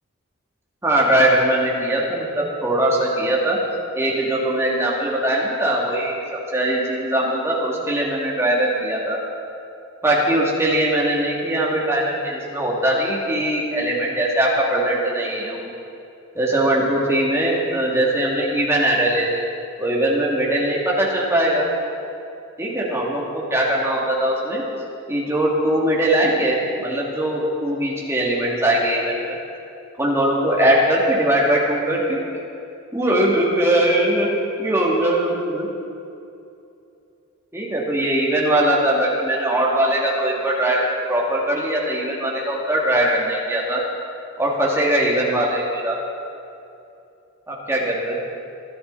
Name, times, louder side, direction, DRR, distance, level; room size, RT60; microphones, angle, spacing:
voice 1, 0.8-3.6 3.9-6.2 6.5-9.2 10.0-15.7 16.3-19.4 19.8-21.7 22.6-24.6 25.1-29.4 30.0-32.2 32.9-34.3 34.6-35.7 37.5-43.8 44.4-46.0 47.5-48.1, right 1 dB, 10° right, -4 dB, 2.6 m, -21 dB
23.0 x 12.5 x 4.2 m, 2.7 s
head